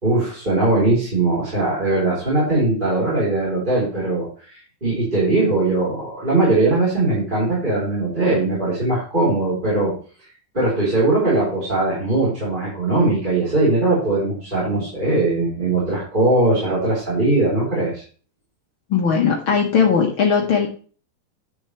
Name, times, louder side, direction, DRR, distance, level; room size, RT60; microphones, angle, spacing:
voice 1, 0.0-9.9 10.5-18.0, right 2 dB, 15° right, -8 dB, 3.6 m, -20 dB
voice 2, 18.9-20.7, left 6 dB, 60° left, 0 dB, 1.3 m, -18 dB
10.0 x 7.2 x 3.2 m, 0.39 s
omnidirectional pair, 4.2 m